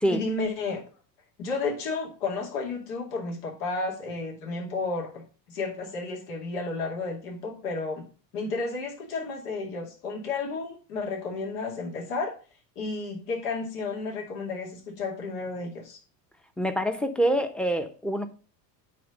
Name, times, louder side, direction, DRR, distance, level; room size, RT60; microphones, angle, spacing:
voice 1, 0.1-0.8 1.4-5.2 5.5-8.0 8.3-12.3 12.8-16.0, left 3 dB, 70° left, 2.5 m, -32 dB
voice 2, 16.6-18.3, right 1 dB, ahead, 0.9 m, -26 dB
9.3 x 3.3 x 6.5 m
hypercardioid pair, 95°, 49 cm